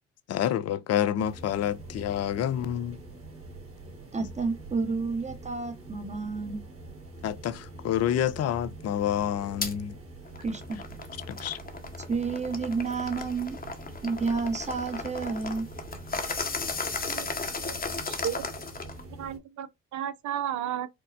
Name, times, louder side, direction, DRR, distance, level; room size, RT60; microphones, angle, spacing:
voice 1, 0.3-3.0 7.2-10.0 11.3-11.6, left 10 dB, 45° left, 0.5 m, -28 dB
sound 1, 1.2-19.4, right 2 dB, 40° right, 1.7 m, -45 dB
voice 2, 4.1-6.6 10.4-10.8 12.1-13.6 14.0-15.7, right 4 dB, 20° right, 1.0 m, -30 dB
sound 2, 9.6-9.7 10.2-19.0, left 4 dB, 25° left, 0.9 m, -35 dB
voice 3, 17.1-17.8 18.1-18.7 19.1-20.9, right 10 dB, 60° right, 0.6 m, -34 dB
4.6 x 2.1 x 2.5 m
hypercardioid pair, 55°, 34 cm